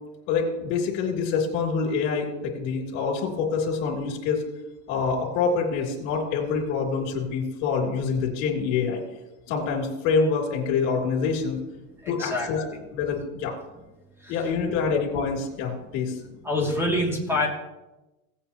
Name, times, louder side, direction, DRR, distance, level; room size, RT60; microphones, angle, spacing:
voice 1, 0.3-4.4 4.9-9.0 9.5-11.6 12.1-13.6 14.3-16.2, left 5 dB, 70° left, 0 dB, 3.0 m, -26 dB
voice 2, 12.0-12.8 14.2-14.3 14.9-15.0 16.4-17.5, left 1 dB, 5° right, -1 dB, 2.5 m, -26 dB
17.0 x 8.5 x 3.0 m, 1.0 s
supercardioid pair, 135°, 39 cm